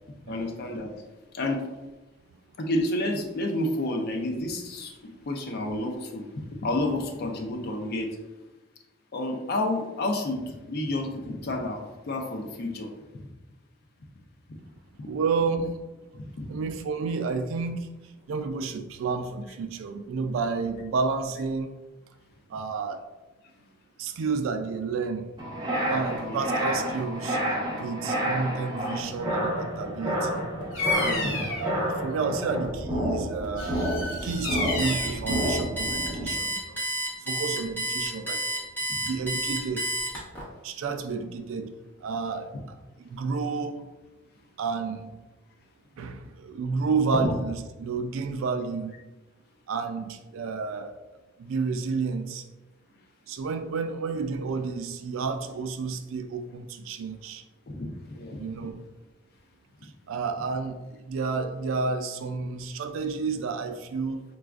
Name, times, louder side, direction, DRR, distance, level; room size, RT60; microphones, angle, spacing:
voice 1, 0.3-0.9 1.3-1.6 2.6-8.1 9.1-12.9 15.0-15.1 16.1-16.5 26.2-26.4 28.9-29.0 30.9-31.7 38.9-39.1 47.1-47.3 57.7-58.4, left 1 dB, 50° left, 3 dB, 0.5 m, -30 dB
voice 2, 15.0-15.7 16.5-17.9 18.3-21.7 22.5-23.0 24.0-25.2 25.8-27.4 27.8-30.4 31.5-36.8 37.3-38.4 39.0-39.9 40.6-41.7 42.0-43.8 44.6-45.1 46.0-48.9 49.7-51.0 51.4-52.4 53.3-57.4 58.4-58.8 60.1-64.2, right 4 dB, 75° right, 8 dB, 0.3 m, -30 dB
sound 1, 25.4-36.3, equal, 20° right, 0.8 m, -30 dB
Bird vocalization bird call bird song, 30.7-31.7 33.6-35.2, left 2 dB, 75° left, 0.8 m, -30 dB
Alarm, 34.8-40.4, right 1 dB, 10° left, 1.0 m, -30 dB
4.0 x 2.3 x 2.4 m, 1.1 s
head